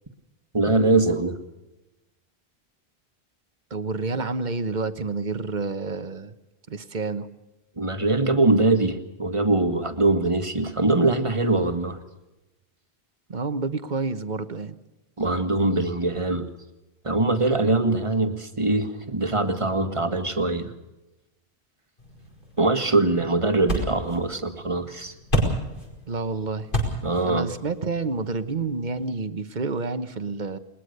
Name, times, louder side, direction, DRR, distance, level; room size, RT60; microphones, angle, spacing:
voice 1, 0.5-1.4 7.8-12.0 15.2-16.5 17.0-20.7 22.6-25.1 27.0-27.5, right 2 dB, 30° right, 7 dB, 1.8 m, -22 dB
voice 2, 3.7-6.3 6.7-7.3 13.3-14.8 26.1-26.7 27.2-30.6, right 3 dB, 45° right, 11 dB, 1.2 m, -29 dB
sound 1, 22.0-29.1, equal, 50° left, 5.2 m, -32 dB
21.0 x 20.5 x 6.7 m, 1.0 s
omnidirectional pair, 1.1 m